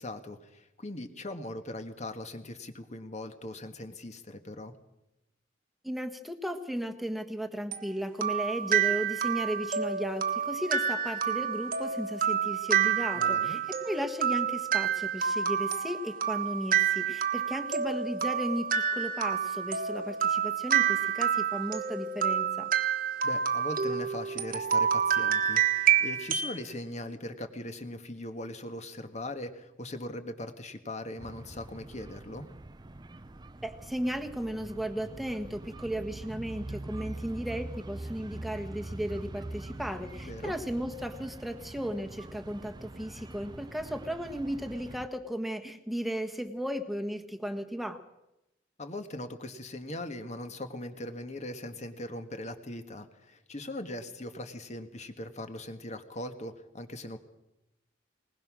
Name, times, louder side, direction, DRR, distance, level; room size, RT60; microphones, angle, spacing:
voice 1, 0.0-4.7 13.1-13.6 23.2-32.4 40.2-40.5 48.8-57.2, left 1 dB, 35° left, 8 dB, 1.7 m, -40 dB
voice 2, 5.8-22.7 33.6-48.0, equal, ahead, 5 dB, 1.4 m, -35 dB
sound 1, 7.7-26.6, right 8 dB, 45° right, 1.4 m, -28 dB
sound 2, 31.2-45.1, right 1 dB, 20° right, 0.6 m, -43 dB
21.0 x 20.5 x 6.3 m, 0.93 s
head